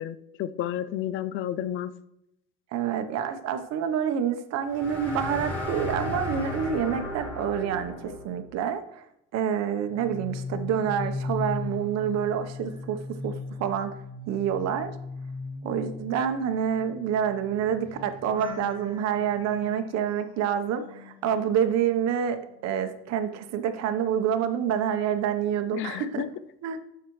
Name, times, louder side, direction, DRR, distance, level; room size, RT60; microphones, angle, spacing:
voice 1, 0.0-1.9 25.7-26.3, left 11 dB, 40° left, 13 dB, 0.4 m, -31 dB
voice 2, 2.7-9.0 9.3-13.9 14.3-14.9 15.6-26.2 26.6-26.8, right 8 dB, 55° right, 8 dB, 1.0 m, -27 dB
sound 1, 4.7-8.4, left 1 dB, 5° left, 2.1 m, -34 dB
sound 2, 9.9-22.1 22.4-24.5 24.8-25.2, left 3 dB, 15° right, 1.4 m, -39 dB
13.0 x 5.8 x 3.1 m, 0.83 s
cardioid pair, 150°, 31 cm